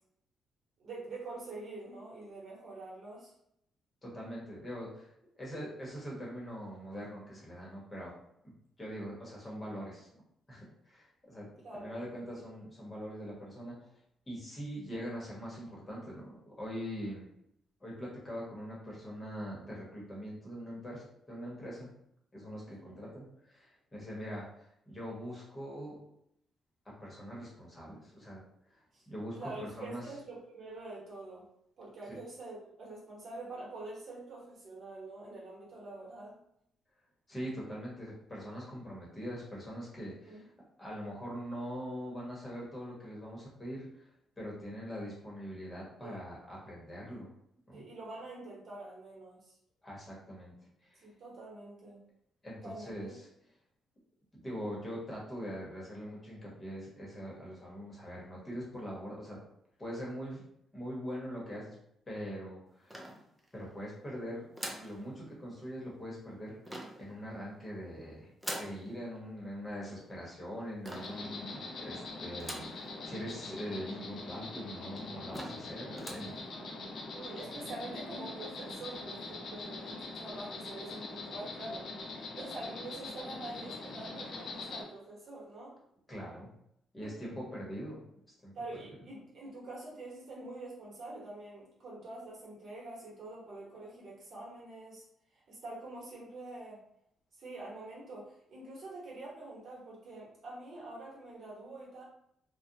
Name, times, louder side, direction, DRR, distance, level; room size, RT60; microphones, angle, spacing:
voice 1, 0.8-3.3 11.6-12.0 22.6-22.9 28.9-29.1 29.4-31.5 31.8-36.4 40.2-40.5 46.0-46.2 47.1-47.3 47.7-49.6 51.0-52.0 52.6-53.1 76.5-85.8 87.0-87.1 88.5-95.0 95.3-96.8 97.4-102.0, right 2 dB, 55° right, -5 dB, 1.1 m, -46 dB
voice 2, 4.0-8.1 8.8-10.1 10.5-11.5 11.7-13.8 14.3-17.3 17.8-21.9 22.3-26.0 26.8-28.4 28.7-28.8 29.1-30.0 37.3-40.4 40.8-44.1 44.4-47.3 47.7-47.8 49.8-50.5 50.8-51.1 52.4-53.3 54.3-59.4 59.8-60.4 60.7-61.7 62.1-63.1 63.5-64.5 64.8-68.3 68.6-76.5 86.1-86.5 86.9-88.0 88.4-88.5, equal, 20° left, -4 dB, 1.1 m, -42 dB
sound 1, 62.9-63.6 64.5-65.0 66.6-67.1 68.4-68.8 70.8-71.2 72.4-72.8 73.3-73.4 73.6-73.7 74.5-74.6 75.0-75.1 75.3-75.7 75.9-76.3, equal, 5° right, 0.5 m, -42 dB
Insect, 70.9-84.8, left 3 dB, 60° left, 0.6 m, -43 dB
2.4 x 2.2 x 2.8 m, 0.74 s
cardioid pair, 90°, 0 cm